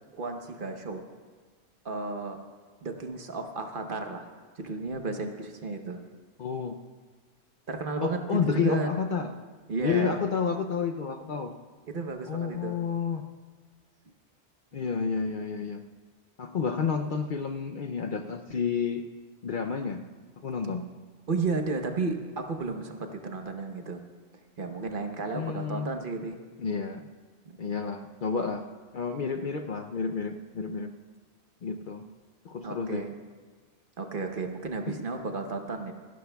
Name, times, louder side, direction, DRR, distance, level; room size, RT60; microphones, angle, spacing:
voice 1, 0.1-1.0 1.8-2.4 2.8-4.3 4.6-6.0 7.7-9.0 9.7-10.2 11.9-12.8 14.7-14.8 21.3-24.0 24.6-26.4 27.4-27.7 32.6-33.1 34.0-35.9, right 3 dB, 50° right, 5 dB, 1.0 m, -33 dB
voice 2, 6.4-6.8 8.0-9.3 9.8-11.5 12.3-13.2 14.7-15.8 16.4-19.1 19.4-20.1 20.4-20.9 25.3-25.9 26.6-27.1 27.6-28.6 28.9-30.9 31.6-32.1 32.4-33.1 34.9-35.1, left 5 dB, 55° left, 5 dB, 0.6 m, -30 dB
29.0 x 11.5 x 2.3 m, 1.5 s
omnidirectional pair, 1.2 m